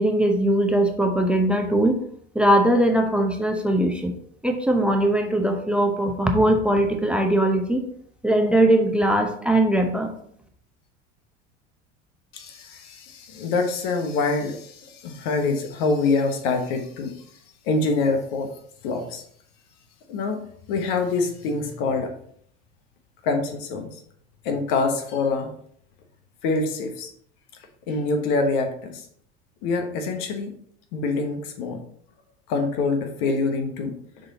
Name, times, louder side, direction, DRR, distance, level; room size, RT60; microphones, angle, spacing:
voice 1, 0.0-2.0 2.3-4.1 4.4-7.8 8.2-10.1, right 1 dB, 5° right, 5 dB, 0.8 m, -20 dB
voice 2, 12.3-17.1 17.6-18.5 18.8-19.2 20.1-20.4 20.7-22.1 23.2-24.0 24.4-25.5 26.4-27.1 27.9-29.1 29.6-30.5 30.9-31.8 32.5-34.0, left 3 dB, 60° left, 5 dB, 1.2 m, -25 dB
6.7 x 3.9 x 4.0 m, 0.64 s
hypercardioid pair, 75°, 34 cm